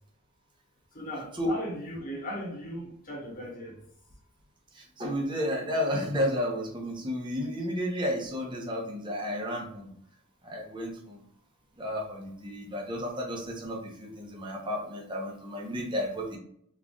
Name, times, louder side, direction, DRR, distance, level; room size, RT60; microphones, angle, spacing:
voice 1, 0.9-3.8, equal, 40° left, -2 dB, 1.2 m, -37 dB
voice 2, 4.8-9.9 10.4-11.2 11.8-16.4, equal, 20° right, -1 dB, 0.8 m, -32 dB
3.8 x 3.2 x 2.3 m, 0.68 s
head